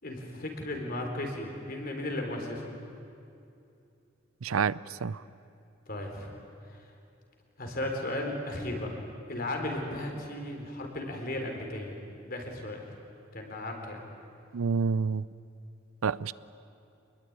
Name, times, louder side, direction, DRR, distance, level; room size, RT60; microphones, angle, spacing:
voice 1, 0.0-2.7 5.9-6.3 7.6-8.9 9.3-11.9 12.3-12.8 13.3-14.0, left 1 dB, 45° left, 3 dB, 4.0 m, -35 dB
voice 2, 4.4-5.2 14.5-15.3 16.0-16.3, right 5 dB, 85° right, 19 dB, 0.6 m, -28 dB
27.0 x 21.0 x 9.6 m, 2.6 s
head